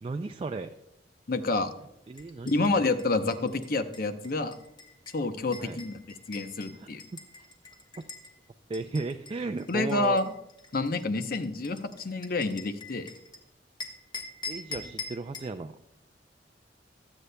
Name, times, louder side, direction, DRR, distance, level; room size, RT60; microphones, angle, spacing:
voice 1, 0.0-0.7 2.1-2.8 5.6-5.8 6.8-6.9 8.7-10.2 14.5-15.7, right 3 dB, 30° right, 7 dB, 0.3 m, -35 dB
voice 2, 1.3-1.7 2.5-4.5 5.1-6.0 6.3-7.0 9.7-10.2 10.7-13.1, left 3 dB, 55° left, 9 dB, 0.7 m, -28 dB
sound 1, 2.2-8.3 8.7-13.4 13.8-15.5, left 3 dB, 25° left, 1.3 m, -44 dB
24.0 x 8.2 x 2.2 m, 0.83 s
head